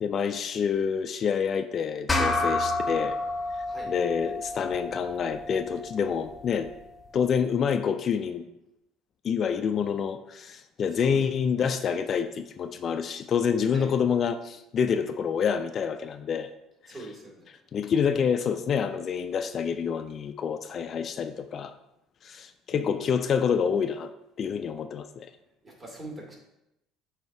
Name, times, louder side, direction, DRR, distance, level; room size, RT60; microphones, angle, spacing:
voice 1, 0.0-3.2 3.5-6.7 7.1-8.5 9.2-16.5 16.8-17.2 17.5-21.8 22.2-24.1 24.4-25.3, left 7 dB, 45° left, 9 dB, 0.3 m, -27 dB
sound 1, 2.1-6.9, left 2 dB, 20° left, 0.9 m, -30 dB
voice 2, 16.9-17.4 22.7-22.9 25.8-26.3, right 2 dB, 25° right, -2 dB, 2.4 m, -41 dB
7.8 x 2.8 x 4.8 m, 0.87 s
hypercardioid pair, 65°, 0 cm